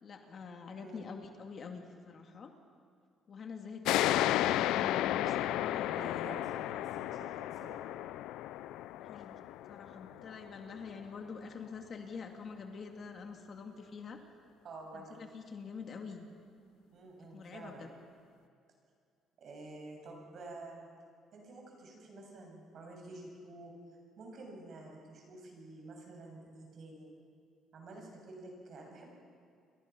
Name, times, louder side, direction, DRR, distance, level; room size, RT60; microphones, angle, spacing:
voice 1, 0.0-2.5 3.3-6.4 9.0-9.4 9.7-14.2 14.9-16.3 17.3-17.9, left 5 dB, 40° left, 4 dB, 2.2 m, -46 dB
sound 1, 3.8-11.0, left 14 dB, 80° left, 0.5 m, -33 dB
voice 2, 5.9-8.0 14.6-15.2 16.9-17.9 19.4-20.9 21.3-23.7 24.2-27.1 27.7-29.1, right 2 dB, 50° right, 1 dB, 7.1 m, -49 dB
29.5 x 22.5 x 6.0 m, 2.3 s
cardioid pair, 135°, 0 cm